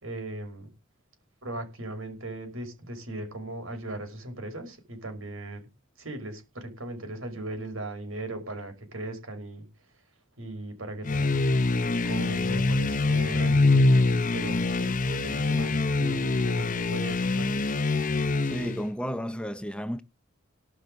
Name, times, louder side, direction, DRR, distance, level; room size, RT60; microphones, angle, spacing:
voice 1, 0.0-0.7 1.4-5.7 6.0-9.7 10.4-11.4 12.0-17.7, right 2 dB, 75° right, 5.5 m, -38 dB
sound 1, 11.0-18.9, left 3 dB, 40° left, 0.8 m, -24 dB
voice 2, 18.4-20.0, equal, 5° left, 0.7 m, -32 dB
18.5 x 6.2 x 6.6 m
head